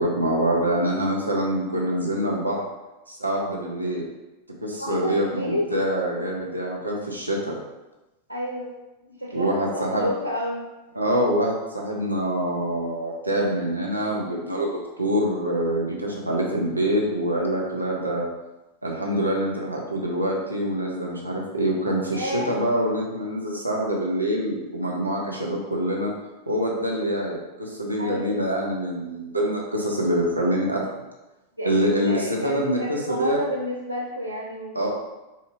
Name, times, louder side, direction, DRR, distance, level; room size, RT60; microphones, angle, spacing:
voice 1, 0.0-2.6 3.1-4.0 4.6-7.6 9.3-10.1 10.9-18.3 18.8-26.1 26.5-30.8 31.6-33.4 34.7-34.9, equal, 85° right, -2 dB, 0.6 m, -25 dB
voice 2, 4.8-5.7 8.3-8.7 9.1-10.6 22.1-22.5 28.0-28.3 31.6-31.7 32.0-34.9, equal, 90° left, -2 dB, 0.4 m, -30 dB
4.3 x 2.7 x 2.5 m, 1.0 s
figure-of-eight pair, 90°, 0 cm